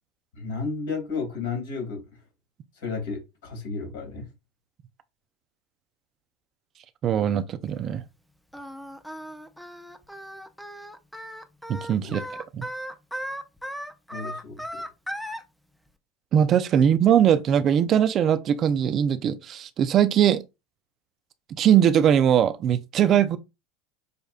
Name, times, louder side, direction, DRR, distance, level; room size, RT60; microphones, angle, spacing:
voice 1, 0.3-2.0 2.8-4.3 12.0-12.2 14.1-14.8, left 4 dB, 70° left, 2.7 m, -33 dB
voice 2, 7.0-8.0 11.7-12.2 12.5-12.6 16.3-20.4 21.5-23.4, right 9 dB, 40° right, 0.6 m, -21 dB
Singing, 8.5-15.4, equal, ahead, 0.7 m, -36 dB
6.7 x 2.6 x 2.3 m
hypercardioid pair, 85°, 0 cm